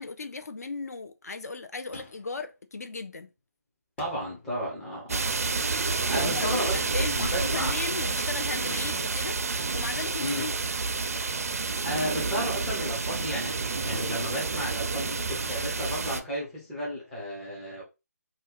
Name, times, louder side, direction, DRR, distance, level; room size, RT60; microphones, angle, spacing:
voice 1, 0.0-3.3 6.1-9.4 9.7-10.5, left 4 dB, 70° left, 0.5 m, -36 dB
sound 1, 1.9-2.5 4.0-4.5 6.7-7.3 8.7-9.2, left 2 dB, 40° left, 0.8 m, -49 dB
voice 2, 4.0-5.5 6.1-7.7 10.2-10.5 11.8-13.6 13.8-17.8, equal, 5° left, 0.4 m, -33 dB
sound 2, 5.1-16.2, right 4 dB, 60° right, 0.4 m, -29 dB
2.6 x 2.1 x 3.9 m
figure-of-eight pair, 170°, 9 cm